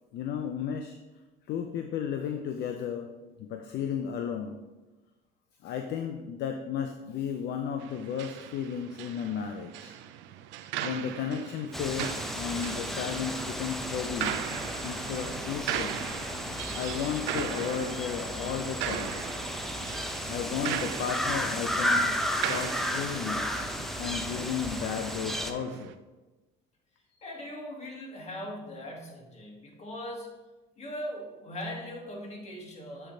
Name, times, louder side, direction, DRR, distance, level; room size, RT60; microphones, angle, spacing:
voice 1, 0.1-1.0 1.5-3.1 3.4-4.6 5.6-10.0 10.8-14.4 14.8-16.0 16.7-19.4 20.3-22.2 22.5-23.5 24.0-26.0, left 7 dB, 60° left, 6 dB, 0.5 m, -34 dB
sound 1, 7.8-26.0, right 11 dB, 70° right, 0.4 m, -39 dB
sound 2, 11.7-25.5, equal, ahead, 0.6 m, -33 dB
voice 2, 27.2-30.3 30.8-33.1, left 1 dB, 35° left, -1 dB, 2.0 m, -40 dB
8.5 x 3.4 x 3.8 m, 1.1 s
supercardioid pair, 75°, 20 cm